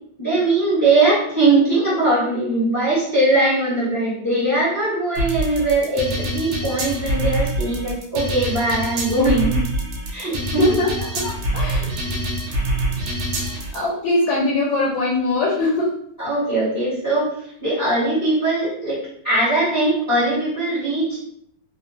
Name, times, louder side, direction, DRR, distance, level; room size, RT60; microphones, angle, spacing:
voice 1, 0.2-9.6 10.1-10.7 16.2-19.0 19.2-21.2, right 2 dB, 15° left, -11 dB, 1.0 m, -20 dB
sound 1, 5.2-13.8, right 1 dB, 80° right, 1.4 m, -25 dB
voice 2, 10.6-10.9 11.2-12.3 13.7-15.9, left 2 dB, 80° left, -3 dB, 1.3 m, -22 dB
3.6 x 2.0 x 2.4 m, 0.71 s
omnidirectional pair, 2.1 m